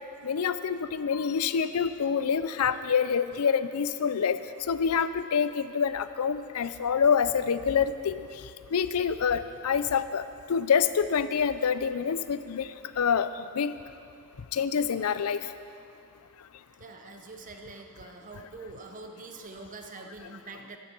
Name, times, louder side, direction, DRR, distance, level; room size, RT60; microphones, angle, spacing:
voice 1, 0.2-4.4 4.7-8.3 8.7-12.7 13.0-13.3 13.5-13.7 14.5-15.5, left 6 dB, 75° left, 13 dB, 0.5 m, -26 dB
voice 2, 16.8-20.8, right 3 dB, 35° right, 4 dB, 0.8 m, -44 dB
14.0 x 10.0 x 4.5 m, 2.5 s
head